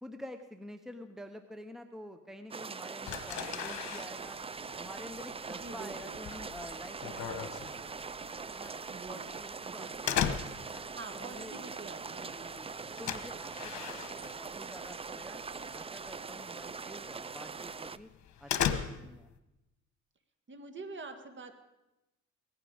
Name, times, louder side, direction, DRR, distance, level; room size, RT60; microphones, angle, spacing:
voice 1, 0.0-4.4 4.8-8.2 8.5-8.8 9.1-10.3 10.7-10.9 11.1-11.6 12.1-12.7 13.0-15.4 15.7-18.1 18.4-19.3, equal, ahead, 8 dB, 0.9 m, -48 dB
sound 1, 2.5-18.0, right 5 dB, 20° right, 0.4 m, -42 dB
sound 2, 3.0-15.0 15.2-15.7 16.1-16.3 16.7-16.8 17.2-17.3 17.7-19.4, left 9 dB, 70° left, 1.3 m, -37 dB
voice 2, 5.5-6.2 8.9-9.4 9.6-10.0 11.0-12.6 20.5-21.5, right 3 dB, 40° right, 7 dB, 1.9 m, -46 dB
18.5 x 15.0 x 5.1 m, 0.98 s
cardioid pair, 90°, 30 cm